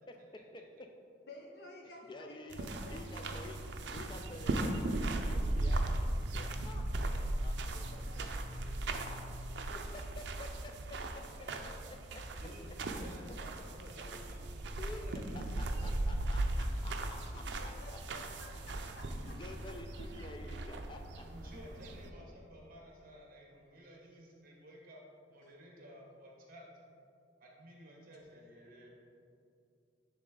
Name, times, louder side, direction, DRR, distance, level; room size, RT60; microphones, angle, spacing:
voice 1, 0.5-0.9 2.1-2.6 2.9-3.6 3.9-6.9 7.4-8.0 9.7-11.2 11.8-12.2 14.8-15.0 15.6-18.0 19.4-21.2, left 2 dB, 25° left, 4 dB, 0.4 m, -50 dB
voice 2, 1.3-4.3 7.6-12.4 12.9-14.3 17.3-19.4 22.1-22.3 25.4-25.5, left 2 dB, 60° left, 0 dB, 1.0 m, -56 dB
sound 1, 2.5-22.1, right 1 dB, 70° right, 0.5 m, -37 dB
voice 3, 12.4-16.0 21.2-25.0 25.3-26.9 27.4-28.9, equal, 50° right, -2 dB, 1.2 m, -54 dB
9.7 x 3.7 x 3.8 m, 2.5 s
head